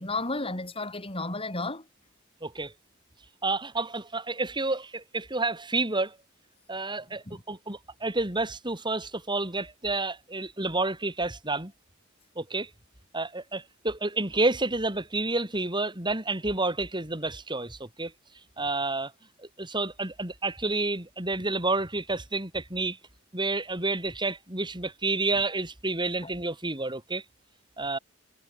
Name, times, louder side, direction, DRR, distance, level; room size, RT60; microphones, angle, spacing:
voice 1, 0.0-1.9 7.3-7.4 26.2-26.3, left 2 dB, 25° left, 6.9 m, -33 dB
voice 2, 2.4-2.7 3.4-6.2 6.7-11.7 12.4-12.7 13.1-18.1 18.6-19.1 19.4-23.0 23.3-27.2 27.8-28.0, right 2 dB, 20° right, 5.3 m, -29 dB
head